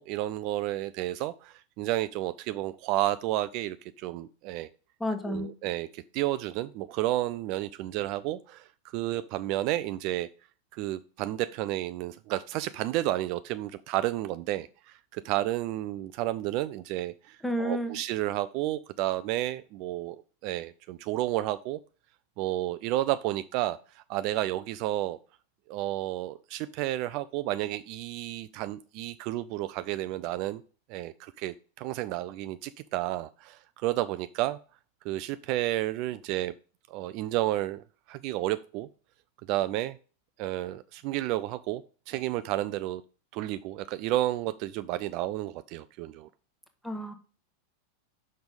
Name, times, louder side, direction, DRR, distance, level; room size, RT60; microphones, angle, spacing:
voice 1, 0.0-4.7 5.3-10.3 10.7-20.2 20.4-21.8 22.4-25.2 25.7-30.6 30.9-34.6 35.0-36.5 36.9-38.9 39.5-40.0 40.4-43.0 43.3-46.3, right 15 dB, 45° right, 13 dB, 0.3 m, -31 dB
voice 2, 5.0-5.5 17.4-18.0 46.8-47.1, equal, 5° left, 7 dB, 1.1 m, -30 dB
6.0 x 5.3 x 5.1 m, 0.38 s
figure-of-eight pair, 90°, 0 cm